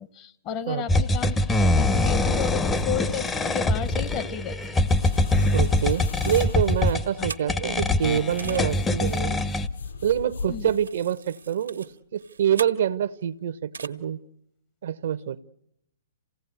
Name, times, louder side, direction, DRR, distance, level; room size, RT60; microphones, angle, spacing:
voice 1, 0.0-4.8 7.2-7.3 10.5-10.7, left 8 dB, 35° left, 12 dB, 1.1 m, -33 dB
sound 1, 0.9-9.7, left 2 dB, 15° left, 0.8 m, -23 dB
sound 2, 1.9-4.2 5.0-6.9 7.6-10.9, left 4 dB, 65° left, 6.4 m, -39 dB
sound 3, 4.2-4.3 4.6-7.9 8.4-8.7 10.2-10.3 10.6-13.2 13.7-13.9, right 5 dB, 85° right, 1.4 m, -42 dB
voice 2, 5.5-9.4 10.0-14.2 14.8-15.4, right 9 dB, 60° right, 14 dB, 0.9 m, -26 dB
28.0 x 17.0 x 8.2 m, 0.81 s
hypercardioid pair, 120°, 0 cm